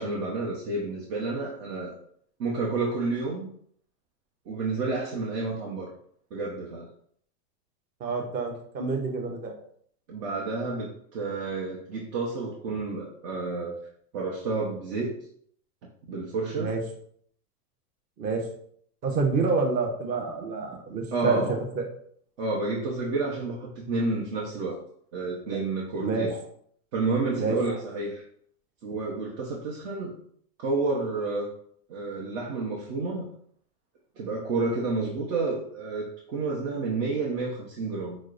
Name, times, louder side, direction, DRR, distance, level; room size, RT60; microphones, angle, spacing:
voice 1, 0.0-1.9 2.4-3.5 4.5-5.9 6.3-6.9 10.1-13.7 14.1-15.1 16.1-16.7 21.1-21.6 22.4-24.8 25.1-26.4 26.9-28.2 28.8-30.2 30.6-31.5 31.9-33.2 34.2-38.2, right 3 dB, 55° right, -4 dB, 0.9 m, -30 dB
voice 2, 8.0-9.5 16.6-16.8 18.2-18.4 19.0-21.4 21.8-21.9 26.0-26.3 27.4-27.6, right 4 dB, 20° right, 2 dB, 0.4 m, -27 dB
6.1 x 2.1 x 2.5 m, 0.64 s
hypercardioid pair, 120°, 48 cm